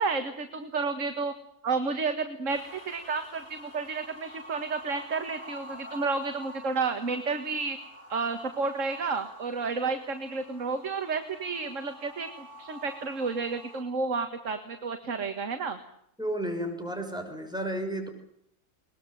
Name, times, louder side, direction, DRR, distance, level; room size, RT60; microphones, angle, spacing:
voice 1, 0.0-1.3 1.6-7.8 8.1-15.8, right 4 dB, 65° right, 7 dB, 2.1 m, -31 dB
sound 1, 2.5-13.8, equal, 85° left, 4.7 m, -48 dB
voice 2, 16.2-18.1, right 1 dB, 5° right, 4 dB, 6.2 m, -32 dB
22.5 x 20.5 x 9.2 m, 0.73 s
omnidirectional pair, 1.4 m